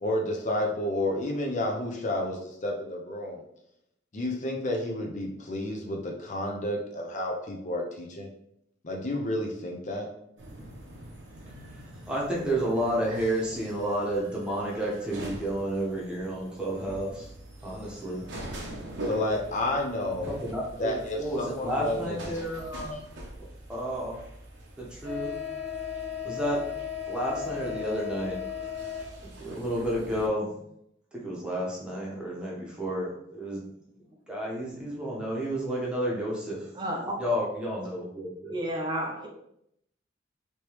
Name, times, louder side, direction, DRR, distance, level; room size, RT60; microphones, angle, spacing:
voice 1, 0.0-3.4 4.1-8.3 8.8-10.1 19.0-20.3 20.8-22.2 22.9-23.0, left 1 dB, 40° left, 1 dB, 0.5 m, -30 dB
sound 1, 10.4-30.3, left 4 dB, 70° right, 0.8 m, -40 dB
voice 2, 12.1-17.3 17.6-18.2 20.3-23.0 23.7-24.2 24.8-25.3 26.2-26.6 27.1-28.4 29.4-30.5 31.1-33.6 34.3-36.7 37.2-38.5, right 1 dB, 5° right, -5 dB, 0.9 m, -31 dB
voice 3, 36.7-37.2 38.5-39.3, right 1 dB, 25° right, -1 dB, 0.5 m, -31 dB
3.3 x 2.9 x 3.0 m, 0.76 s
head